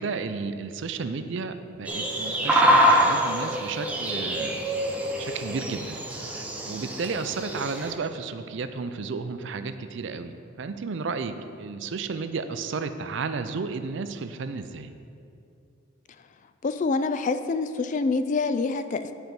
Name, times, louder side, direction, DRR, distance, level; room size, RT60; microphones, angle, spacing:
voice 1, 0.0-4.6 5.2-14.9, right 4 dB, 60° right, 10 dB, 0.4 m, -33 dB
sound 1, 1.9-7.9, equal, 5° right, 0.7 m, -25 dB
voice 2, 16.6-19.1, left 4 dB, 40° left, 10 dB, 0.3 m, -26 dB
10.0 x 4.5 x 5.3 m, 2.5 s
head